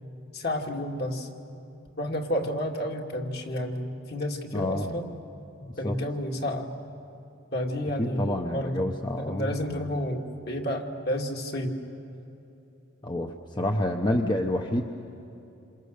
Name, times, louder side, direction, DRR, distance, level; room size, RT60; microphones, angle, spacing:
voice 1, 0.3-1.3 2.0-5.1 5.8-6.7 7.5-11.8, left 1 dB, 50° left, 1 dB, 2.4 m, -31 dB
voice 2, 4.5-5.0 5.7-6.0 8.0-9.8 13.0-14.8, left 1 dB, 20° left, 2 dB, 0.9 m, -28 dB
28.0 x 27.0 x 6.7 m, 2.9 s
head